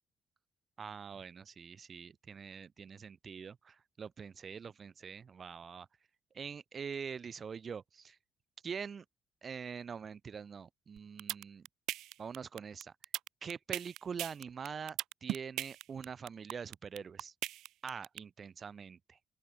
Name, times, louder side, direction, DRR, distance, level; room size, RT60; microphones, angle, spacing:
voice 1, 0.8-5.9 6.3-8.2 8.6-9.0 9.4-11.7 12.2-12.9 13.4-17.3 17.8-19.2, right 6 dB, 45° right, 0.9 m, -44 dB
sound 1, 11.0-18.2, right 15 dB, 90° right, 0.3 m, -38 dB
open air
cardioid pair, 90°, 0 cm